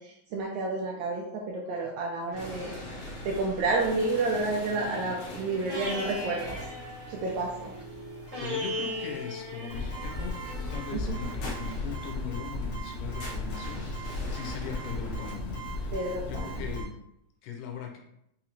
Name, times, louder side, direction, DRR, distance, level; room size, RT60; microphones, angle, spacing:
voice 1, 0.0-6.6 7.1-7.7 10.9-11.1 15.9-16.6, right 3 dB, 80° right, -2 dB, 1.7 m, -30 dB
sound 1, 2.3-15.3, left 1 dB, 65° left, 1.8 m, -43 dB
sound 2, 4.4-10.8, left 1 dB, 40° right, 1.0 m, -39 dB
voice 2, 8.4-17.0 17.4-18.0, left 7 dB, 85° left, 3 dB, 2.2 m, -40 dB
sound 3, 9.7-16.8, left 2 dB, 35° left, 1.1 m, -35 dB
5.4 x 2.9 x 2.6 m, 0.78 s
omnidirectional pair, 3.8 m